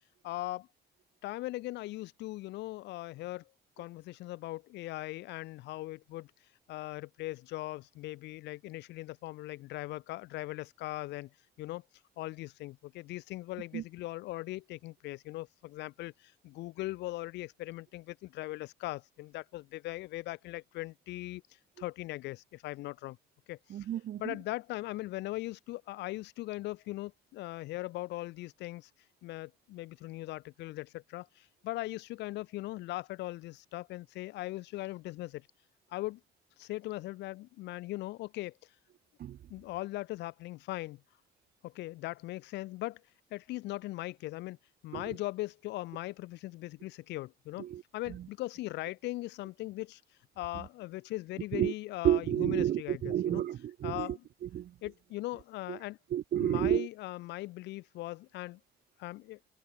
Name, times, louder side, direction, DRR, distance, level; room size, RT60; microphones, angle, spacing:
voice 1, 0.2-0.7 1.2-3.4 3.8-6.3 6.7-11.3 11.6-11.8 12.2-21.4 21.8-23.2 23.5-23.6 24.2-28.9 29.2-35.5 35.9-36.2 36.6-38.5 39.5-41.0 41.6-43.0 43.3-44.6 44.8-47.7 47.9-50.0 50.4-53.4 53.8-54.2 54.8-56.0 56.4-58.6 59.0-59.4, left 18 dB, 90° left, 4.3 m, -39 dB
voice 2, 23.7-24.4 39.2-39.4 44.9-45.1 47.6-47.8 48.1-48.3 50.5-50.7 51.5-51.7 52.0-54.7 55.7-55.8 56.1-56.9, right 11 dB, 65° right, 0.8 m, -31 dB
supercardioid pair, 70°, 17 cm